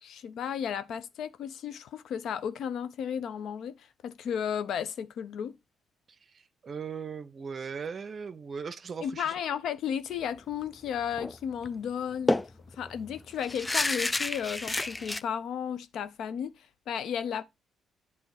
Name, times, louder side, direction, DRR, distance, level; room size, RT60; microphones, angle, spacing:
voice 1, 0.0-5.6 9.0-12.4 12.8-16.5 16.9-17.4, left 8 dB, 70° left, 0.6 m, -34 dB
voice 2, 6.6-9.3, right 6 dB, 45° right, 0.7 m, -38 dB
sound 1, 11.1-11.4 11.7-11.8 12.3-15.2, left 2 dB, 15° left, 0.3 m, -30 dB
8.6 x 2.9 x 4.8 m
cardioid pair, 90°, 0 cm